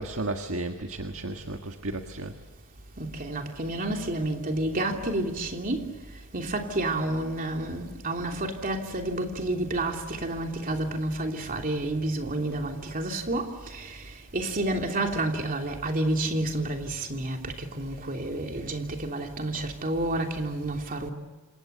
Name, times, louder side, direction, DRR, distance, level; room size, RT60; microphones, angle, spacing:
voice 1, 0.0-2.3, right 2 dB, 70° right, 1.7 m, -33 dB
voice 2, 3.0-5.9 6.3-14.0 14.3-21.1, right 1 dB, 40° right, 3.1 m, -30 dB
28.0 x 27.0 x 6.9 m
head